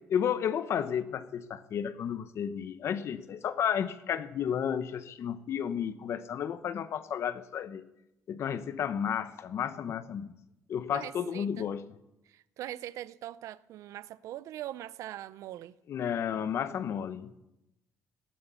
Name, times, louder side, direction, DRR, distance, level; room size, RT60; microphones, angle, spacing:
voice 1, 0.1-7.8 8.3-10.3 10.7-11.9 15.9-17.4, left 8 dB, 55° left, 1.0 m, -32 dB
voice 2, 10.9-11.7 12.3-15.7, right 13 dB, 75° right, 0.5 m, -42 dB
18.0 x 11.0 x 6.9 m
cardioid pair, 130°, 5 cm